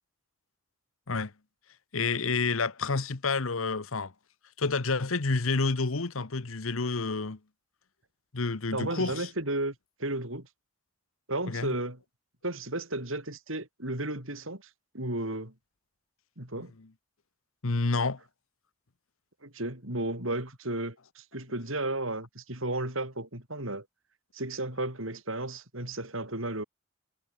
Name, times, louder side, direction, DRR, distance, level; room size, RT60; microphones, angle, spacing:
voice 1, 1.9-4.1 4.6-7.4 8.3-9.3 11.5-11.7 17.6-18.2, left 3 dB, 75° left, 1.1 m, -29 dB
voice 2, 8.7-9.7 10.0-10.5 11.3-12.0 12.4-14.6 14.9-15.5 16.4-16.7 19.4-23.8 24.3-26.6, right 2 dB, 70° right, 6.6 m, -33 dB
head